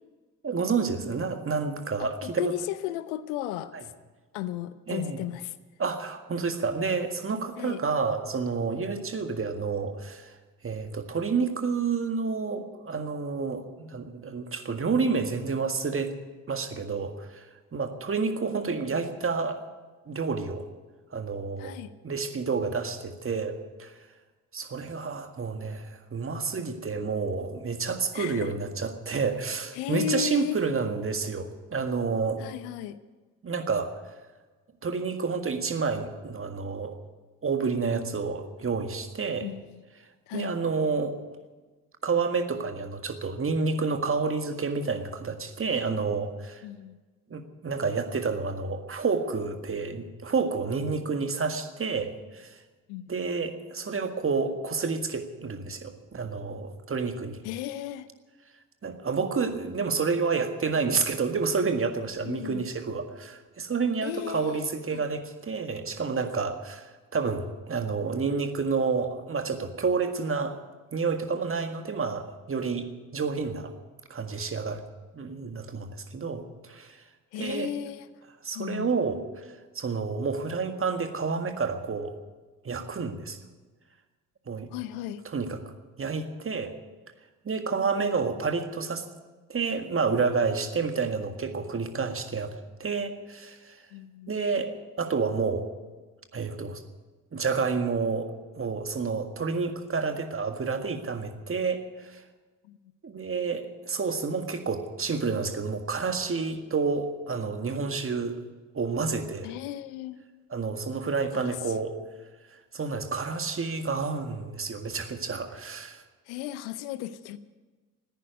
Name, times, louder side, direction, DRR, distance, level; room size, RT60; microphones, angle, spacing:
voice 1, 0.4-2.5 3.7-3.8 4.9-5.2 5.8-10.3 10.6-16.1 16.5-17.5 17.7-19.6 20.1-20.7 21.1-21.8 22.0-24.0 24.5-32.4 33.4-33.9 34.8-37.0 37.4-39.5 40.3-41.2 42.0-46.6 47.3-52.6 53.1-57.4 58.8-70.6 70.9-72.9 73.1-73.7 74.1-74.8 75.1-77.0 77.4-77.7 78.4-79.5 79.8-82.1 82.6-83.4 84.5-84.7 85.3-85.6 86.0-86.7 87.5-89.0 89.5-92.5 92.8-93.8 94.3-95.7 96.3-96.8 97.3-98.3 98.6-102.2 103.0-108.4 108.7-109.5 110.5-111.9 112.7-116.0, right 4 dB, 30° right, 6 dB, 1.8 m, -29 dB
voice 2, 2.0-3.7 4.3-5.5 7.6-7.8 21.6-21.9 28.1-28.5 29.7-30.6 32.4-33.0 39.4-39.8 40.3-40.5 46.6-47.0 52.9-53.1 57.4-58.1 62.2-62.6 64.0-65.0 77.3-78.1 78.5-78.9 84.7-85.2 93.9-94.4 102.6-102.8 109.4-110.2 111.3-111.6 116.3-117.4, left 13 dB, 70° left, 15 dB, 0.8 m, -35 dB
14.5 x 10.0 x 9.3 m, 1.3 s
figure-of-eight pair, 45°, 40 cm